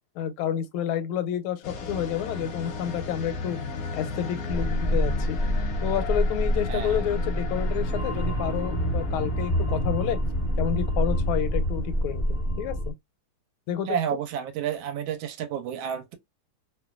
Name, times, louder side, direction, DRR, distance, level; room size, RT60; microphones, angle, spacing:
voice 1, 0.2-3.6 3.9-5.4 5.8-10.2 10.6-12.9 13.7-14.0, left 9 dB, 85° left, 1.4 m, -29 dB
sound 1, 1.6-12.4, left 4 dB, 65° left, 0.9 m, -36 dB
sound 2, 4.5-12.9, equal, ahead, 0.5 m, -27 dB
voice 2, 6.7-7.0 13.9-16.2, right 9 dB, 80° right, 1.3 m, -30 dB
3.2 x 2.2 x 2.3 m
omnidirectional pair, 2.2 m